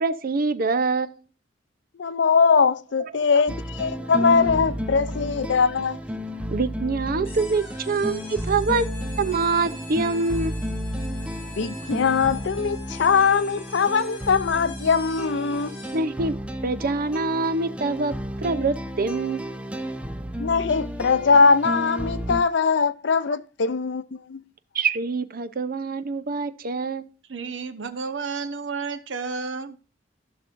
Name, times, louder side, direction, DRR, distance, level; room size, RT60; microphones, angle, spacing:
voice 1, 0.0-1.1 6.5-10.7 15.9-16.4 16.6-19.5 24.7-27.1, right 3 dB, 50° right, 0.6 m, -25 dB
voice 2, 2.0-6.0 11.6-15.7 20.4-24.4, left 5 dB, 70° left, 0.5 m, -21 dB
sound 1, 3.5-22.4, equal, 5° right, 0.6 m, -32 dB
sound 2, 7.2-16.2, left 3 dB, 35° left, 5.7 m, -44 dB
voice 3, 27.3-29.8, right 4 dB, 80° right, 0.9 m, -31 dB
15.0 x 6.1 x 2.5 m
head